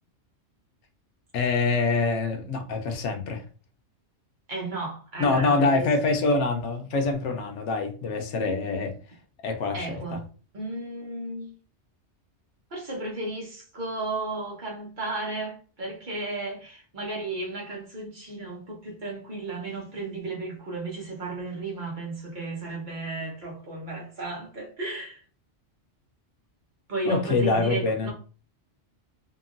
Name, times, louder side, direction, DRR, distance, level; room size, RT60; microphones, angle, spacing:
voice 1, 1.3-3.4 5.2-8.9 9.4-10.0 27.1-28.1, left 3 dB, 90° left, 1.0 m, -25 dB
voice 2, 4.5-5.9 9.7-10.2 10.5-11.6 12.7-25.2 26.9-28.1, right 2 dB, 45° right, 1.1 m, -34 dB
2.9 x 2.6 x 2.5 m
omnidirectional pair, 1.2 m